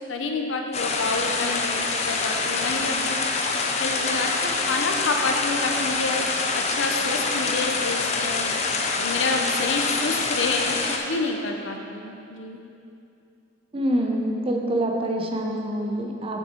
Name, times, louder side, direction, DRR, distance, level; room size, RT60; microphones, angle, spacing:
voice 1, 0.1-3.5 3.8-6.2 6.5-12.6, left 3 dB, 70° left, 3 dB, 0.7 m, -28 dB
sound 1, 0.7-11.0, left 4 dB, 35° left, 0.5 m, -26 dB
voice 2, 13.7-16.4, right 1 dB, 30° right, 2 dB, 0.6 m, -26 dB
6.5 x 6.2 x 4.3 m, 2.6 s
head